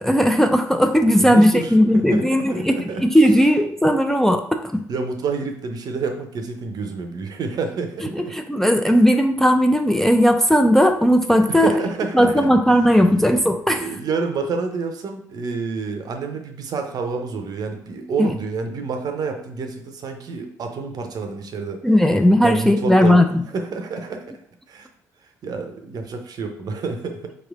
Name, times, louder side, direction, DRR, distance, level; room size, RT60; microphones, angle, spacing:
voice 1, 0.0-4.8 8.2-11.7 12.1-13.9 18.2-18.3 21.8-23.3, equal, 5° left, 5 dB, 0.4 m, -17 dB
voice 2, 1.2-3.0 4.9-8.3 11.5-12.8 13.7-21.9 22.4-23.2 23.5-24.4 24.7-24.9 25.4-27.4, right 4 dB, 50° right, 5 dB, 0.6 m, -28 dB
4.6 x 3.1 x 2.4 m, 0.63 s
figure-of-eight pair, 50°, 9 cm